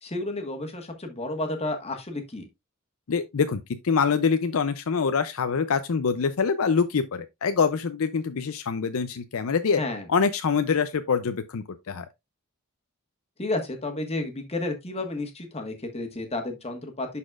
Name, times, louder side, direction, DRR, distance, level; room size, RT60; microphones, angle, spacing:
voice 1, 0.0-2.5 9.8-10.1 13.4-17.2, left 2 dB, 30° left, 1.4 m, -31 dB
voice 2, 3.1-9.8 10.1-12.1, left 5 dB, 65° left, 0.5 m, -25 dB
11.0 x 4.2 x 2.4 m
head